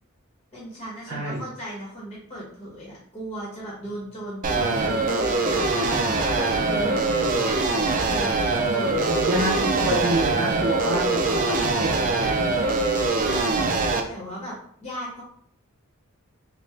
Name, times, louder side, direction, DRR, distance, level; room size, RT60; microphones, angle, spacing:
voice 1, 0.5-5.6 6.2-7.0 7.3-9.1 13.1-13.7 14.1-14.5 14.8-15.2, equal, 30° left, -6 dB, 1.3 m, -37 dB
voice 2, 1.1-1.4 6.9-7.5 9.1-12.6, right 1 dB, 70° right, -4 dB, 0.8 m, -28 dB
sound 1, 4.4-14.0, right 3 dB, 40° right, 0.4 m, -23 dB
sound 2, 5.2-8.3, right 1 dB, 20° right, 1.3 m, -40 dB
3.5 x 2.4 x 3.1 m, 0.63 s
head